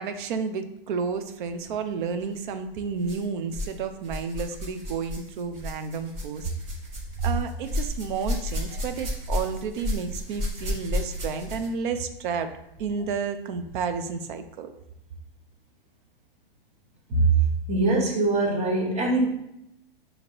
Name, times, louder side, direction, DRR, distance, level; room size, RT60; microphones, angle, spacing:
voice 1, 0.0-6.5 7.2-12.5 12.8-14.7, right 5 dB, 60° right, 8 dB, 0.5 m, -31 dB
sound 1, 2.1-2.3 3.0-3.8 4.0-11.8 12.8-12.9 13.7-13.8, left 1 dB, 40° right, 1.4 m, -32 dB
voice 2, 17.7-19.2, right 2 dB, 25° right, -1 dB, 1.0 m, -22 dB
5.1 x 2.9 x 2.8 m, 0.82 s
hypercardioid pair, 110°, 29 cm